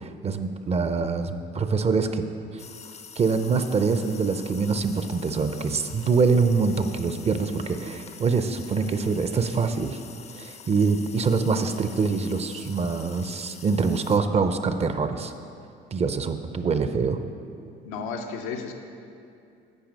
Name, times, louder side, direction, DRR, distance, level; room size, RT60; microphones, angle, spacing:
voice 1, 0.0-2.2 2.5-2.6 3.2-10.0 10.3-15.3 15.9-17.2, right 4 dB, 30° right, 8 dB, 0.5 m, -24 dB
sound 1, 2.6-14.2, left 6 dB, 30° left, 0.5 m, -45 dB
voice 2, 17.8-18.7, left 5 dB, 85° left, 5 dB, 0.7 m, -33 dB
8.9 x 4.9 x 5.2 m, 2.5 s
supercardioid pair, 85°, 21 cm